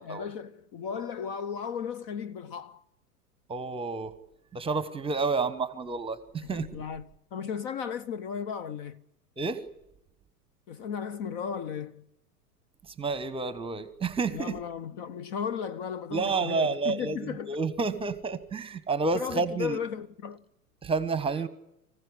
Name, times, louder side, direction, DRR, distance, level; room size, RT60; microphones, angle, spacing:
voice 1, 0.0-2.8 6.4-9.0 10.7-12.1 14.3-17.6 19.1-20.4, left 7 dB, 35° left, 0.8 m, -35 dB
voice 2, 3.5-4.1 4.5-6.7 9.4-9.7 12.8-14.6 16.1-19.8 20.8-21.5, right 4 dB, 10° right, 1.2 m, -30 dB
25.5 x 15.5 x 9.9 m
figure-of-eight pair, 95°, 46 cm